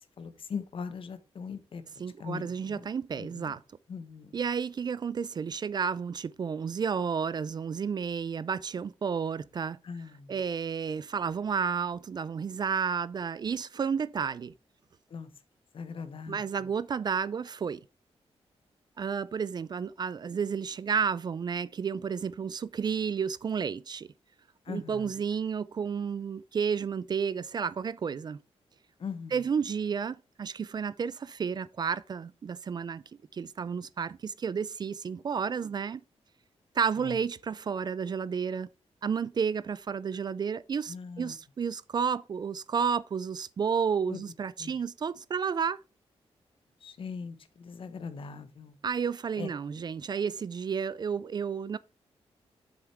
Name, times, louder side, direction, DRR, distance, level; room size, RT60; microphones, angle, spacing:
voice 1, 0.2-2.9 3.2-3.6 3.9-4.4 9.8-10.4 15.1-15.3 15.7-16.7 24.6-25.1 29.0-29.4 37.0-37.2 40.9-41.4 44.1-44.2 44.6-44.8 46.8-48.8 49.4-49.5, left 5 dB, 55° left, 1.2 m, -40 dB
voice 2, 2.0-3.6 4.3-9.8 10.3-14.5 16.3-17.8 19.0-24.1 24.7-28.4 29.3-33.0 33.3-36.0 36.8-38.7 39.0-45.8 48.8-51.8, right 6 dB, 40° right, 0.4 m, -31 dB
7.7 x 7.3 x 3.4 m
wide cardioid pair, 140°, 11 cm